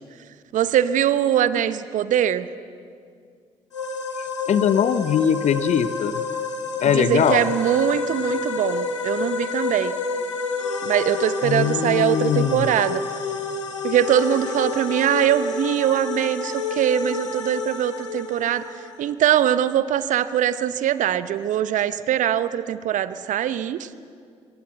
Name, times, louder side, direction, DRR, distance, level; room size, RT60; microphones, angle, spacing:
voice 1, 0.5-2.5 6.8-9.9 10.8-13.0 13.8-18.7 19.0-23.9, right 10 dB, 55° right, 15 dB, 0.8 m, -22 dB
sound 1, 3.7-19.1, left 4 dB, 90° left, 1.4 m, -29 dB
voice 2, 4.5-6.2 6.8-7.5 11.4-12.7, left 8 dB, 50° left, 14 dB, 0.7 m, -21 dB
21.5 x 18.5 x 7.9 m, 2.2 s
figure-of-eight pair, 45°, 15 cm